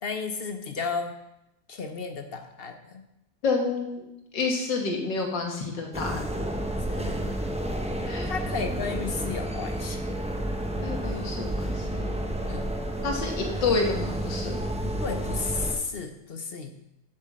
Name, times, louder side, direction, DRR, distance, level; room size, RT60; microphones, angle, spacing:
voice 1, 0.0-1.1 1.7-3.0 6.9-7.3 8.2-10.2 12.5-12.7 14.8-16.8, left 4 dB, 50° left, 6 dB, 0.7 m, -33 dB
voice 2, 3.4-4.0 4.3-6.2 8.0-8.3 10.8-12.2 13.0-14.6, left 4 dB, 85° left, 1 dB, 2.3 m, -29 dB
sound 1, 5.9-15.7, right 1 dB, 5° right, 0.5 m, -30 dB
7.9 x 6.7 x 7.5 m, 0.87 s
omnidirectional pair, 1.9 m